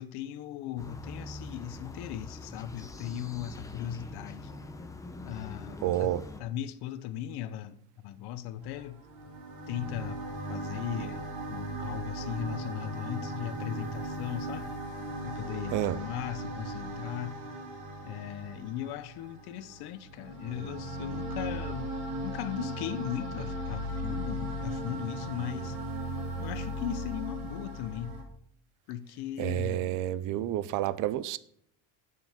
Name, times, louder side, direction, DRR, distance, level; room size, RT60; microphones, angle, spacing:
voice 1, 0.0-4.5 5.2-9.0 9.7-10.2 10.5-11.2 11.5-14.7 15.2-17.4 18.0-21.9 22.2-25.8 26.4-28.2 28.9-30.0, left 11 dB, 60° left, 0.8 m, -38 dB
sound 1, 0.8-6.4, left 2 dB, 5° left, 0.6 m, -44 dB
voice 2, 5.8-6.2 15.7-16.0 29.4-31.4, right 13 dB, 45° right, 0.4 m, -29 dB
sound 2, 8.6-28.2, right 1 dB, 75° right, 3.0 m, -37 dB
9.0 x 7.7 x 3.5 m
cardioid pair, 150°, 45 cm